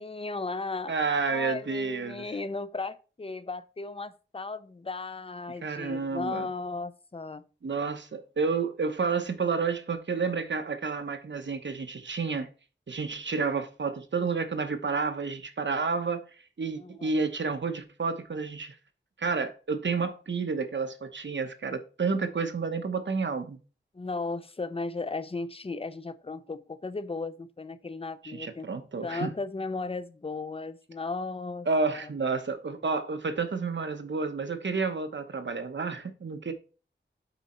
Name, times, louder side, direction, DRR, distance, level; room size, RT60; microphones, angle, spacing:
voice 1, 0.0-0.9 1.2-7.4 16.8-17.2 23.9-28.7 29.0-32.1, left 3 dB, 30° left, 0.5 m, -36 dB
voice 2, 0.9-2.2 5.6-6.5 7.6-12.5 12.9-16.2 16.6-18.7 19.2-23.6 28.2-29.3 31.7-36.5, right 4 dB, 70° right, 0.9 m, -30 dB
8.1 x 4.1 x 4.3 m
wide cardioid pair, 75°, 20 cm